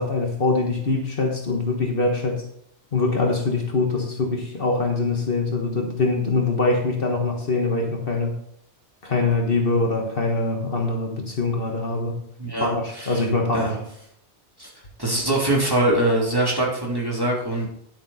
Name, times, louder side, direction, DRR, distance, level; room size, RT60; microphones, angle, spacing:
voice 1, 0.0-2.4 2.9-8.4 9.0-12.2 12.6-13.7, left 3 dB, 55° left, 2 dB, 1.5 m, -23 dB
voice 2, 12.4-13.2 13.5-13.8 14.6-14.7 15.0-17.7, right 1 dB, 20° right, -3 dB, 2.9 m, -23 dB
9.9 x 8.6 x 4.1 m, 0.71 s
omnidirectional pair, 1.2 m